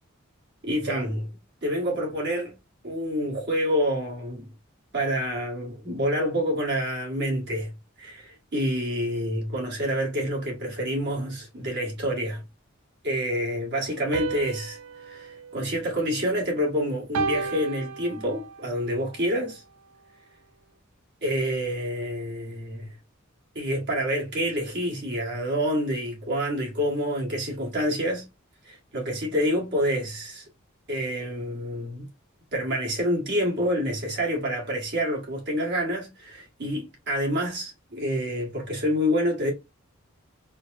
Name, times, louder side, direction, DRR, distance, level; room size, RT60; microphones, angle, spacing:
voice 1, 0.6-1.3 1.6-2.5 2.8-4.5 4.9-7.7 8.0-12.4 13.0-19.6 21.2-23.0 23.5-28.2 28.6-30.4 30.9-32.1 32.5-39.5, equal, 55° right, 1.6 m, -27 dB
sound 1, 14.1-16.6 17.1-18.7, right 5 dB, 80° right, 0.5 m, -33 dB
4.3 x 2.2 x 2.6 m
head